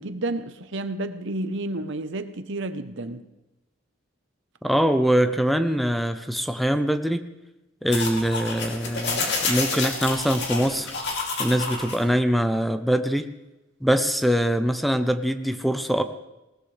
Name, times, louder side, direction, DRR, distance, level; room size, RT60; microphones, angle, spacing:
voice 1, 0.0-3.2, right 2 dB, 65° right, 11 dB, 0.9 m, -31 dB
voice 2, 4.6-7.2 7.8-10.9 11.4-13.3 13.8-16.0, equal, ahead, 9 dB, 0.6 m, -23 dB
sound 1, 7.9-12.0, left 4 dB, 60° left, 2.8 m, -29 dB
19.5 x 18.0 x 3.3 m, 0.99 s
head